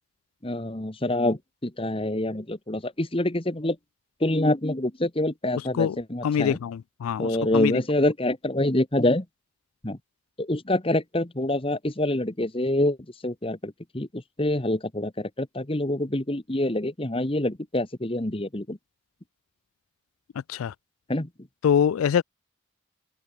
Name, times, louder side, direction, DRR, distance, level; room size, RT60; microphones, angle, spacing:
voice 1, 0.4-3.8 4.2-6.6 7.2-9.2 9.8-10.0 10.4-13.0 13.2-18.8 21.1-21.3, left 1 dB, 25° left, 1.3 m, -26 dB
voice 2, 5.6-7.8 20.5-20.7 21.6-22.2, left 8 dB, 85° left, 0.3 m, -25 dB
head